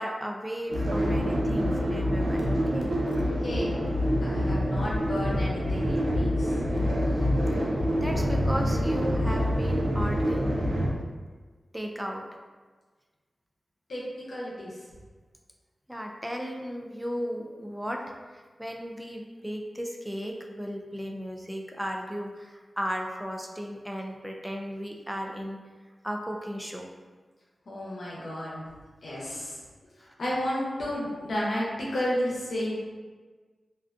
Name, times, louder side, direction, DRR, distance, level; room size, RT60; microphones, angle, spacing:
voice 1, 0.0-2.9 7.6-10.7 11.7-12.2 15.9-18.0 18.3-25.6 26.0-26.9, equal, 5° right, 2 dB, 0.3 m, -35 dB
sound 1, 0.7-10.9, equal, 75° right, 0.4 m, -26 dB
voice 2, 3.4-3.8 4.2-6.6 13.9-14.8 27.7-28.6 29.0-29.6 30.0-32.8, equal, 80° left, -6 dB, 0.7 m, -32 dB
2.5 x 2.2 x 2.5 m, 1.4 s
cardioid pair, 60°, 0 cm